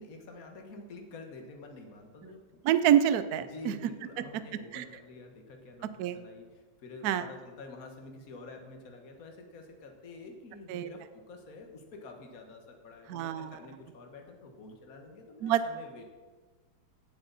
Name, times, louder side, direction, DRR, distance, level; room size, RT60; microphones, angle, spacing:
voice 1, 0.0-2.4 3.5-5.9 6.1-6.5 6.8-16.0, left 3 dB, 45° left, 3 dB, 1.8 m, -48 dB
voice 2, 2.6-3.7 4.2-4.3 4.7-4.9 6.0-6.2 7.0-7.2 10.7-10.9 13.1-13.5 15.4-15.6, right 11 dB, 75° right, 12 dB, 0.9 m, -26 dB
17.5 x 8.0 x 4.1 m, 1.4 s
omnidirectional pair, 2.2 m